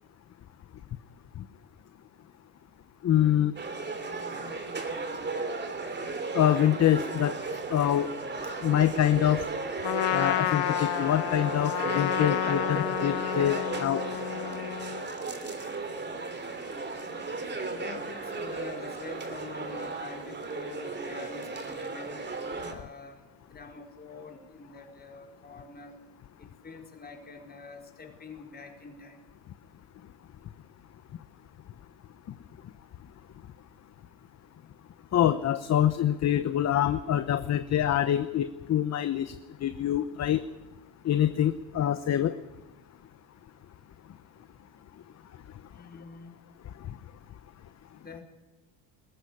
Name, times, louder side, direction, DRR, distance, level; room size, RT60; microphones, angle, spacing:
voice 1, 3.0-3.5 6.3-7.4 7.7-8.1 8.6-9.4 10.1-14.0 35.1-39.3 39.6-40.4 41.0-42.3, left 11 dB, 35° left, 11 dB, 0.9 m, -25 dB
sound 1, 3.6-22.7, right 3 dB, 25° right, 2.9 m, -35 dB
Trumpet, 9.8-15.1, left 15 dB, 65° left, 0.9 m, -30 dB
voice 2, 17.6-22.3 22.6-23.2 23.5-25.9 26.4-29.2 45.7-46.4 48.0-48.2, left 4 dB, 20° left, 2 dB, 4.4 m, -46 dB
20.5 x 15.0 x 9.7 m, 1.1 s
cardioid pair, 130°, 45 cm